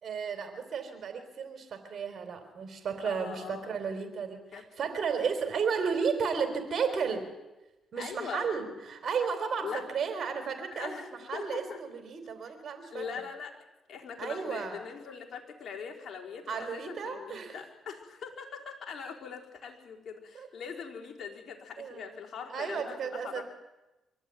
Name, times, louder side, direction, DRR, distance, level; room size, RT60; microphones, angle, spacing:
voice 1, 0.0-7.2 7.9-13.0 14.2-14.8 16.5-17.6 20.3-20.5 21.8-22.1 22.5-23.4, right 6 dB, 60° right, 7 dB, 3.8 m, -33 dB
voice 2, 3.0-3.8 4.5-4.6 7.9-8.5 9.6-9.8 10.7-11.8 12.9-13.5 13.9-23.4, left 6 dB, 60° left, -1 dB, 4.4 m, -42 dB
24.5 x 14.0 x 9.5 m, 1.0 s
cardioid pair, 70°, 0 cm